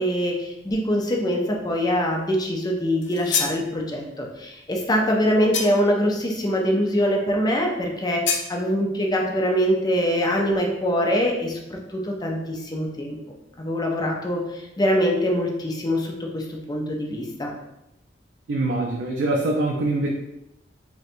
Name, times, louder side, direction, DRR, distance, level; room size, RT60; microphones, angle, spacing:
voice 1, 0.0-13.2 13.6-17.5, equal, 20° left, 0 dB, 0.5 m, -24 dB
sound 1, 3.0-3.6 5.5-6.0 8.3-8.5, left 6 dB, 75° left, 0.4 m, -26 dB
voice 2, 18.5-20.1, right 2 dB, 75° right, 0 dB, 0.4 m, -23 dB
4.1 x 2.1 x 2.6 m, 0.87 s
head